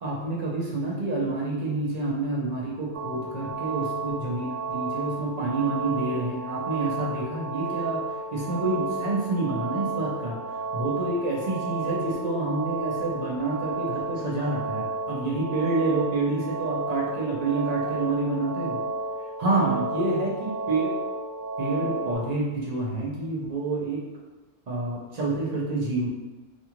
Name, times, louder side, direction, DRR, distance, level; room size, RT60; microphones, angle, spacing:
voice 1, 0.0-8.0 8.3-10.4 10.7-18.8 19.4-20.9 21.6-24.0 24.7-26.1, right 2 dB, 50° right, -4 dB, 0.5 m, -28 dB
sound 1, 2.9-22.2, right 3 dB, 75° right, 1.0 m, -32 dB
2.6 x 2.3 x 2.9 m, 1.1 s
omnidirectional pair, 1.2 m